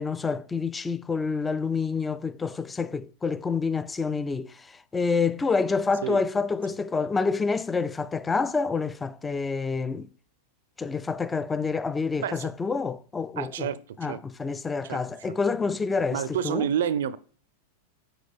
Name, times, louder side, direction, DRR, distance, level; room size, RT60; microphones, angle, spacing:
voice 1, 0.0-10.1 10.8-13.7 14.0-16.7, left 4 dB, 15° left, 0.3 m, -28 dB
voice 2, 12.2-12.5 13.4-13.8 14.1-14.2 14.8-15.0 16.1-17.2, right 9 dB, 65° right, 0.4 m, -28 dB
5.9 x 4.7 x 3.5 m
hypercardioid pair, 95°, 0 cm